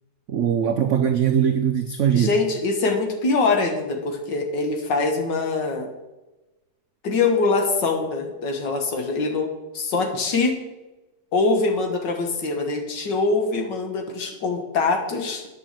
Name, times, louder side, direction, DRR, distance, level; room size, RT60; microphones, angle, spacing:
voice 1, 0.3-2.3, right 8 dB, 80° right, 8 dB, 0.6 m, -21 dB
voice 2, 2.1-5.9 7.0-9.5 9.7-10.6 11.3-15.5, left 3 dB, 65° left, 4 dB, 1.9 m, -23 dB
9.6 x 5.9 x 7.5 m, 1.1 s
omnidirectional pair, 2.1 m